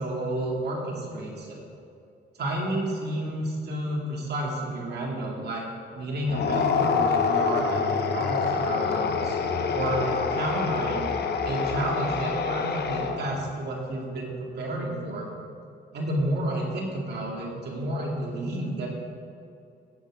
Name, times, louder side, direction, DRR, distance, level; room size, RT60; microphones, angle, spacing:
voice 1, 0.0-1.6 2.4-5.6 5.9-9.4 9.7-11.0 11.4-15.3 15.9-18.9, right 1 dB, 55° right, -1 dB, 2.4 m, -31 dB
sound 1, 6.3-13.4, left 5 dB, 55° left, 0.9 m, -26 dB
16.0 x 7.1 x 3.7 m, 2.5 s
cardioid pair, 90°, 20 cm